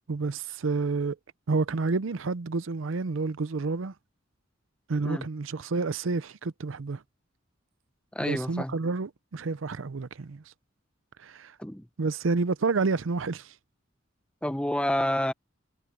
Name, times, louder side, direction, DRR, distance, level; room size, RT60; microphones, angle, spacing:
voice 1, 0.1-1.2 1.5-3.9 4.9-7.0 8.2-10.5 11.2-11.6 12.0-13.5, right 4 dB, 80° right, 0.6 m, -29 dB
voice 2, 8.1-8.8 11.6-11.9 14.4-15.3, left 1 dB, 5° left, 1.0 m, -28 dB
head